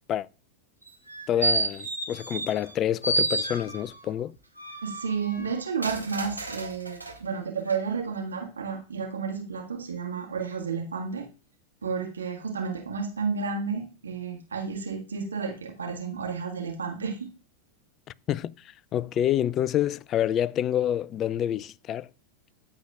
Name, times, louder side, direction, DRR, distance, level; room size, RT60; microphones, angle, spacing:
sound 1, 0.9-2.7 3.0-4.0 4.6-7.2 7.7-7.8, right 2 dB, 85° right, 2.2 m, -30 dB
voice 1, 1.3-4.3 18.3-18.5 18.9-22.1, left 11 dB, 30° left, 0.3 m, -27 dB
voice 2, 4.8-11.3 11.8-17.3, right 5 dB, 70° right, 1.8 m, -31 dB
13.5 x 7.8 x 2.5 m
figure-of-eight pair, 90°, 0 cm